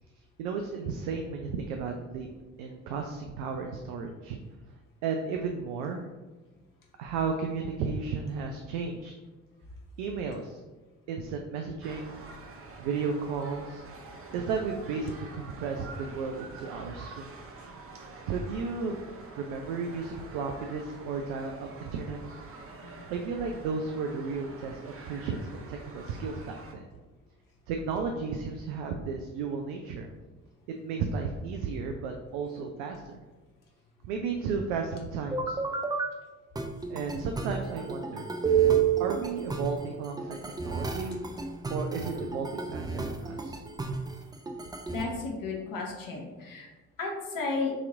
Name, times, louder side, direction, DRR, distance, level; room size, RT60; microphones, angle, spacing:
voice 1, 0.4-2.3 2.6-4.4 5.0-6.1 7.0-9.1 10.0-10.6 11.1-12.2 12.8-13.8 14.3-17.3 18.3-19.0 19.4-22.2 23.1-26.8 27.7-30.1 30.7-33.2 34.0-35.6 36.9-38.3 39.0-41.2 41.7-43.6, right 5 dB, 70° right, 3 dB, 0.5 m, -34 dB
sound 1, 11.8-26.7, right 3 dB, 30° right, 0.8 m, -47 dB
sound 2, 35.3-36.1 36.6-45.0, right 6 dB, 10° right, 0.4 m, -30 dB
voice 2, 44.9-46.7 47.0-47.7, left 3 dB, 50° left, 0 dB, 1.3 m, -33 dB
6.9 x 2.9 x 2.5 m, 1.2 s
figure-of-eight pair, 45°, 42 cm